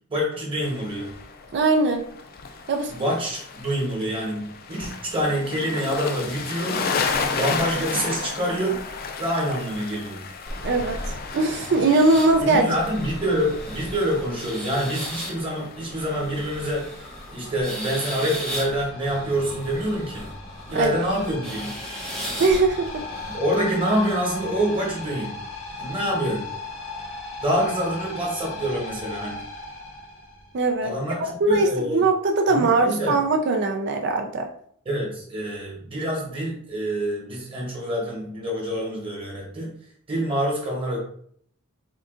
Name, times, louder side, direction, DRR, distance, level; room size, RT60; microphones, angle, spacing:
voice 1, 0.1-1.1 2.9-6.9 7.3-8.8 9.2-10.2 12.4-16.8 17.3-20.3 20.7-21.7 23.3-25.3 25.8-26.5 27.4-29.4 30.8-32.0 32.5-33.2 34.8-39.7 40.1-41.0, equal, 25° right, -2 dB, 1.1 m, -26 dB
sound 1, 0.6-18.9, left 5 dB, 45° left, 0.4 m, -34 dB
voice 2, 1.5-2.0 2.7-2.9 10.6-11.0 11.3-12.6 20.7-20.9 22.4-23.0 30.5-30.9 31.4-34.5, right 3 dB, 55° right, 3 dB, 0.4 m, -20 dB
sound 2, 10.5-23.4, equal, ahead, 0.8 m, -36 dB
sound 3, 16.3-30.9, left 3 dB, 80° left, 1.1 m, -38 dB
3.7 x 2.4 x 3.7 m, 0.63 s
head